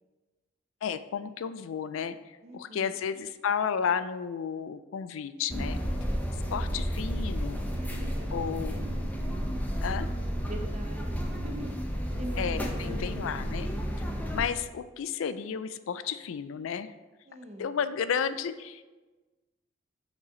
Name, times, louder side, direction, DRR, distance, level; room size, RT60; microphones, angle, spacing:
voice 1, 0.8-5.8 6.5-7.6 8.3-8.9 9.8-10.1 12.4-13.7 14.3-16.9 17.6-18.8, left 7 dB, 80° left, 13 dB, 0.4 m, -32 dB
voice 2, 2.4-2.9 7.7-8.9 10.5-11.8 12.2-13.4 17.3-17.7, right 1 dB, 35° right, 4 dB, 0.7 m, -42 dB
sound 1, 5.5-14.4, equal, 10° left, 0.7 m, -32 dB
6.2 x 5.3 x 3.8 m, 1.2 s
head